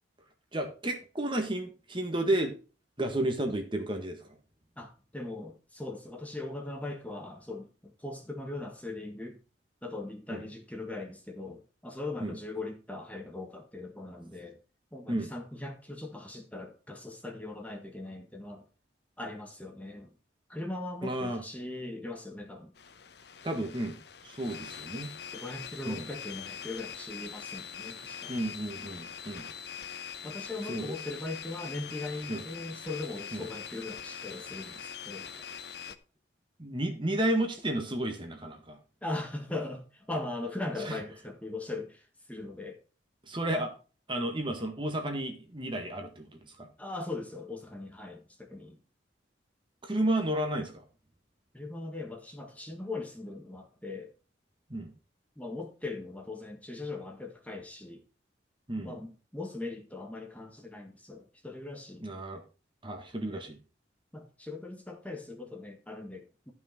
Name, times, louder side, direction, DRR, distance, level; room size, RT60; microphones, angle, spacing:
voice 1, 0.5-2.5 3.0-4.3 10.3-10.4 12.2-12.4 15.1-15.3 21.0-21.4 23.4-24.0 24.2-25.1 25.8-26.1 28.3-29.5 30.6-30.9 32.3-32.4 33.3-33.5 36.6-38.8 40.8-41.0 43.2-43.7 44.1-46.7 49.8-50.8 54.7-54.9 58.7-59.0 62.0-62.4 62.8-63.6, right 1 dB, 25° right, 1.6 m, -32 dB
voice 2, 4.8-9.4 9.8-14.6 14.9-18.6 19.2-20.1 20.5-22.7 25.3-28.4 30.2-35.3 39.0-42.8 46.8-48.8 51.5-54.1 55.4-58.0 58.8-62.1 64.1-66.5, left 2 dB, 5° left, 1.6 m, -40 dB
sound 1, 22.8-36.0, left 8 dB, 55° left, 0.8 m, -43 dB
12.5 x 6.1 x 4.4 m
head